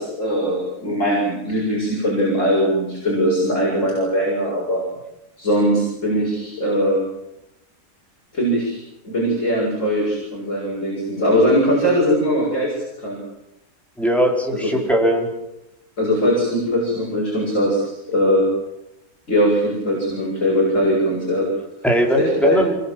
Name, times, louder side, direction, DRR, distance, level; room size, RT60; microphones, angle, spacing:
voice 1, 0.0-4.8 5.4-7.0 8.3-8.8 9.0-12.7 13.0-13.2 14.5-14.8 16.0-18.5 19.3-21.5 22.1-22.6, equal, 55° left, -4 dB, 7.6 m, -20 dB
voice 2, 14.0-15.3 21.8-22.8, equal, ahead, 0 dB, 4.9 m, -19 dB
26.5 x 22.5 x 7.8 m, 0.87 s
omnidirectional pair, 1.6 m